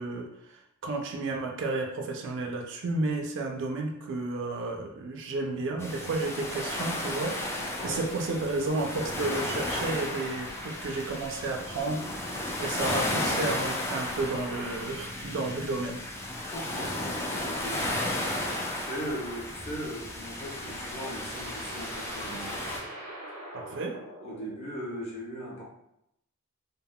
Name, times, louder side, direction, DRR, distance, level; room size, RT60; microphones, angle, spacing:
voice 1, 0.0-12.1 12.3-16.0 23.5-23.9, right 3 dB, 55° right, 1 dB, 0.4 m, -32 dB
sound 1, 5.8-22.8, left 1 dB, 10° left, 0.3 m, -34 dB
voice 2, 16.5-22.6 24.2-25.6, equal, 30° left, -4 dB, 0.7 m, -39 dB
sound 2, 19.9-25.0, right 1 dB, 90° right, 0.7 m, -44 dB
3.5 x 2.0 x 2.2 m, 0.78 s
head